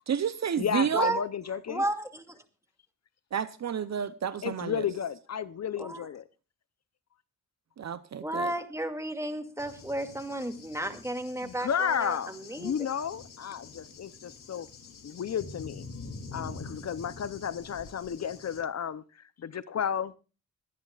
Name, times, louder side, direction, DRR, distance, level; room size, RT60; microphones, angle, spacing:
voice 1, 0.1-1.1 3.3-4.9 7.8-8.5, right 8 dB, 50° right, 0.8 m, -30 dB
voice 2, 0.6-1.8 4.4-6.3 11.4-14.7 15.0-15.9 16.3-20.1, left 8 dB, 50° left, 0.7 m, -33 dB
voice 3, 1.7-2.2 5.8-6.0 8.2-11.7 12.0-12.2 12.5-12.7, right 1 dB, 10° right, 2.3 m, -32 dB
Cricket / Thunder, 9.6-18.6, left 4 dB, 65° left, 2.9 m, -46 dB
24.5 x 10.5 x 2.4 m
cardioid pair, 75°, 35 cm